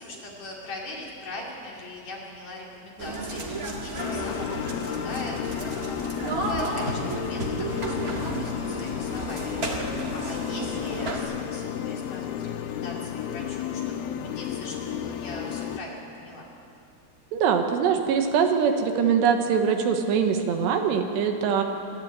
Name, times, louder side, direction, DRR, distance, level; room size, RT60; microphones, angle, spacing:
voice 1, 0.0-16.5, left 2 dB, 45° left, -2 dB, 3.6 m, -41 dB
sound 1, 3.0-11.2, right 2 dB, 45° right, 1.1 m, -32 dB
sound 2, 4.0-15.8, left 9 dB, 75° left, 2.6 m, -32 dB
voice 2, 17.3-21.6, right 7 dB, 85° right, 5 dB, 3.5 m, -23 dB
25.5 x 11.5 x 8.9 m, 2.6 s
omnidirectional pair, 4.8 m